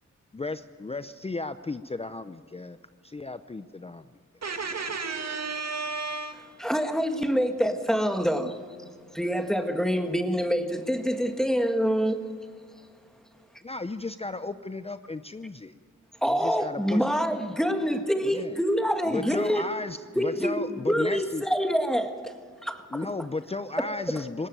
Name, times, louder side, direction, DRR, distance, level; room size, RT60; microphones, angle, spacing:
voice 1, 0.3-2.8 3.0-4.0 13.6-15.7 16.3-17.0 18.2-18.5 19.1-21.4 22.9-24.5, left 3 dB, 20° left, 12 dB, 0.6 m, -34 dB
voice 2, 4.4-6.7, right 4 dB, 55° right, 6 dB, 2.2 m, -33 dB
voice 3, 6.6-8.6 9.1-12.2 16.2-19.7 20.1-22.3 22.6-23.1, equal, ahead, 6 dB, 1.7 m, -26 dB
19.5 x 17.5 x 9.2 m, 2.1 s
cardioid pair, 75°, 31 cm